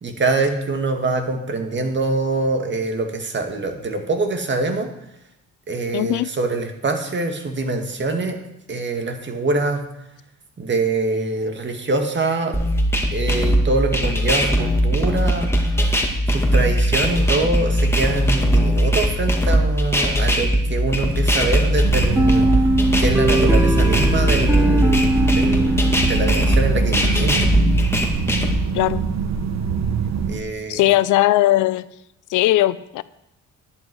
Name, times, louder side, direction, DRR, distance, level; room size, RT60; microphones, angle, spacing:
voice 1, 0.0-4.9 5.7-8.4 8.7-9.9 10.6-12.6 13.1-15.5 16.3-22.5 23.0-27.4 30.3-30.9, right 3 dB, 40° right, 5 dB, 2.0 m, -24 dB
voice 2, 5.9-6.3 28.7-29.0 30.7-31.8 32.3-33.0, left 15 dB, 90° left, 17 dB, 0.5 m, -18 dB
sound 1, 12.5-28.5, equal, 10° left, 2.2 m, -19 dB
sound 2, 21.8-30.4, right 6 dB, 60° right, 1.3 m, -24 dB
sound 3, 22.2-26.8, right 1 dB, 10° right, 0.8 m, -21 dB
11.0 x 10.5 x 4.7 m, 0.85 s
cardioid pair, 90°, 30 cm